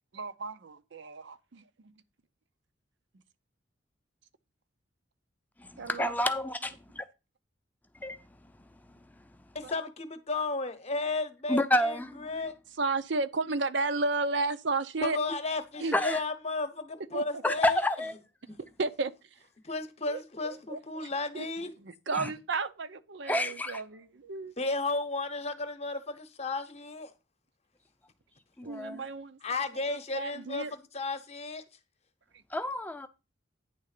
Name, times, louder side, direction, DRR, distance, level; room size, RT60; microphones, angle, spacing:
voice 1, 0.1-1.6 5.8-6.1 12.8-15.2 15.8-15.9 17.1-17.2 18.8-19.1 20.1-20.2 20.4-20.8 21.3-21.5 21.8-24.5 28.6-29.4 29.9-30.7, right 3 dB, 65° right, 0.6 m, -33 dB
voice 2, 5.9-7.0 8.0-8.2 11.5-12.5 15.9-16.2 17.4-18.1 22.1-22.3 23.2-23.8 28.6-29.0 32.5-33.1, left 1 dB, 10° left, 0.6 m, -29 dB
voice 3, 9.5-12.6 15.0-17.8 19.6-21.7 24.6-27.1 29.4-31.6, left 3 dB, 35° left, 0.9 m, -34 dB
9.6 x 3.7 x 6.6 m
head